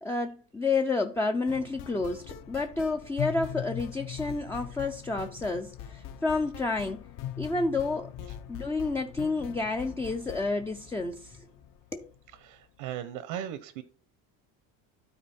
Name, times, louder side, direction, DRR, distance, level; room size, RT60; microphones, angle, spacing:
voice 1, 0.0-7.0 7.4-8.1 8.5-11.5 11.9-12.1, left 3 dB, 5° left, 0.3 m, -30 dB
sound 1, 1.5-12.4, left 11 dB, 55° left, 0.7 m, -41 dB
voice 2, 12.4-13.8, right 10 dB, 75° right, 0.9 m, -37 dB
12.5 x 4.3 x 4.3 m
cardioid pair, 140°, 39 cm